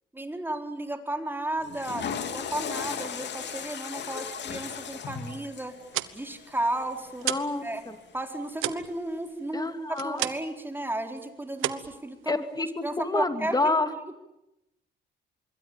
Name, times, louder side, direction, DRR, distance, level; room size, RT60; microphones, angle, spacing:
voice 1, 0.1-5.8 6.1-7.3 7.6-7.8 8.1-9.7 10.0-12.4 12.8-13.7, right 1 dB, 10° right, 5 dB, 4.2 m, -33 dB
Water / Toilet flush, 1.6-7.8, left 7 dB, 60° left, 2.7 m, -37 dB
sound 1, 5.7-7.6 7.9-10.6 10.9-11.2 11.5-12.6, right 14 dB, 90° right, 1.3 m, -34 dB
voice 2, 7.2-8.0 9.5-10.3 12.3-13.9, left 2 dB, 20° left, 8 dB, 2.8 m, -28 dB
26.0 x 22.5 x 8.9 m, 0.90 s
cardioid pair, 90°, 20 cm